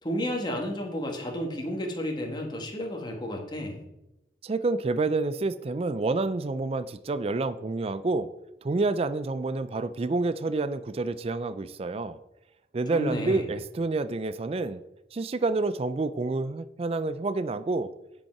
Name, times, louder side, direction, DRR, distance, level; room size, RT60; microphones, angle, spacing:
voice 1, 0.0-3.8 12.9-13.5, left 1 dB, 25° left, 1 dB, 1.6 m, -32 dB
voice 2, 4.4-8.3 8.6-12.2 12.7-14.8 15.1-17.9, right 3 dB, 35° right, 13 dB, 0.4 m, -28 dB
10.0 x 5.4 x 5.9 m, 0.90 s
head